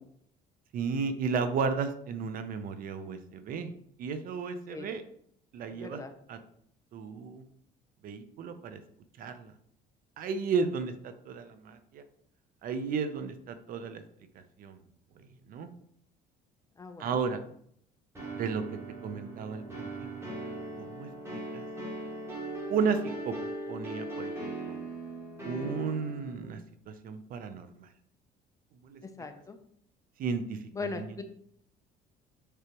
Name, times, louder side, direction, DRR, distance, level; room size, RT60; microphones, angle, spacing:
voice 1, 0.7-3.7 4.0-5.0 5.5-6.0 6.3-6.4 6.9-7.4 8.0-8.8 9.2-9.5 10.2-12.0 12.6-14.0 14.6-14.8 15.5-15.7 17.0-17.4 18.3-18.6 19.0-20.3 20.8-21.6 22.7-23.3 23.7-24.7 25.4-26.6 26.9-27.9 28.8-29.0 30.2-31.1, right 5 dB, 55° right, 10 dB, 0.7 m, -33 dB
voice 2, 5.7-6.1 16.8-17.4 29.0-29.6 30.7-31.2, left 3 dB, 20° left, 8 dB, 0.6 m, -40 dB
sound 1, 18.1-26.4, right 1 dB, 15° right, 2.5 m, -39 dB
6.7 x 4.7 x 3.0 m, 0.67 s
cardioid pair, 130°, 18 cm